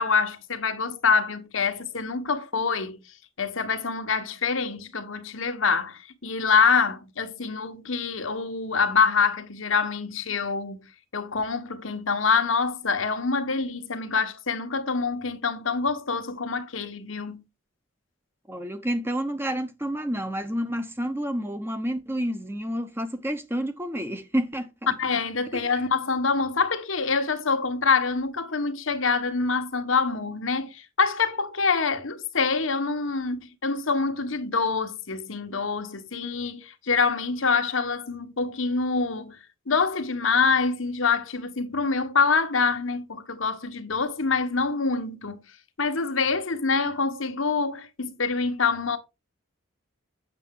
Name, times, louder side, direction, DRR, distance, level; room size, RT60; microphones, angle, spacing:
voice 1, 0.0-3.0 3.4-10.9 11.1-17.4 25.0-39.4 39.7-45.4 45.8-49.0, left 4 dB, 80° left, 1.3 m, -25 dB
voice 2, 18.5-24.9 25.5-25.8, equal, 10° right, 0.9 m, -29 dB
8.1 x 7.0 x 3.8 m
head